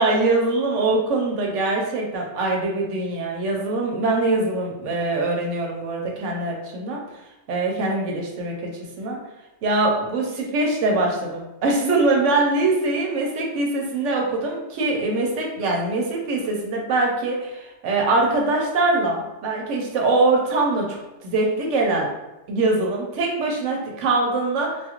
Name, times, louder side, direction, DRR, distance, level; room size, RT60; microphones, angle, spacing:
voice 1, 0.0-7.0 7.5-9.2 9.6-22.1 22.5-24.8, right 2 dB, 75° right, 0 dB, 0.9 m, -23 dB
2.5 x 2.4 x 2.8 m, 0.99 s
omnidirectional pair, 1.3 m